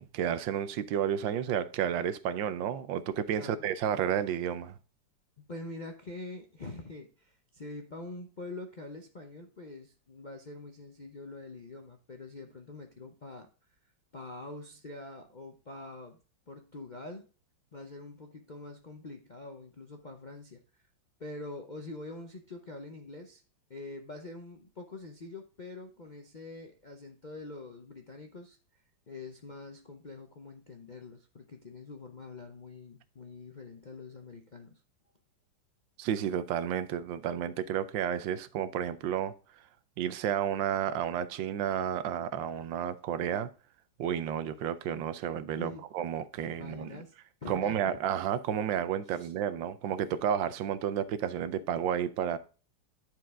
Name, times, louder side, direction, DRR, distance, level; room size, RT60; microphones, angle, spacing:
voice 1, 0.0-4.7 36.0-39.3 40.0-43.5 44.0-47.0 47.5-52.4, right 9 dB, 90° right, 1.4 m, -31 dB
voice 2, 5.4-13.5 14.1-16.2 16.5-17.3 17.7-20.6 21.2-23.4 23.7-28.8 29.1-34.8 45.5-45.9 46.4-47.1 47.4-48.0 49.0-49.3, left 2 dB, 50° left, 0.5 m, -45 dB
10.0 x 4.6 x 3.7 m
omnidirectional pair, 2.0 m